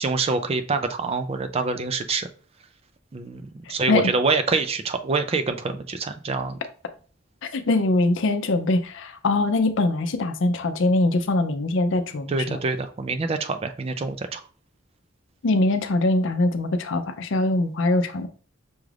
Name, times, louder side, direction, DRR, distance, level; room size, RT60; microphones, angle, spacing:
voice 1, 0.0-2.3 3.1-6.6 12.3-14.4, right 4 dB, 30° right, 8 dB, 0.4 m, -26 dB
voice 2, 7.5-12.6 15.4-18.3, left 2 dB, 65° left, 8 dB, 0.5 m, -22 dB
6.1 x 2.4 x 3.2 m, 0.40 s
head